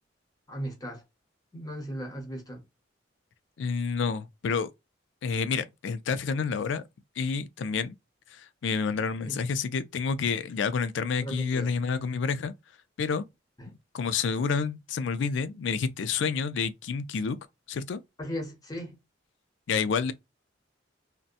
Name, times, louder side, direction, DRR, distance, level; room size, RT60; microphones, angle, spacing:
voice 1, 0.5-1.0 1.5-2.6 9.3-9.4 11.2-11.7 18.2-18.9, equal, 20° left, 0.8 m, -36 dB
voice 2, 3.6-4.7 5.2-6.8 7.2-7.9 8.3-12.5 13.0-13.2 13.9-17.4 17.7-18.0 19.7-20.1, left 5 dB, 70° left, 0.3 m, -29 dB
2.7 x 2.1 x 2.4 m
head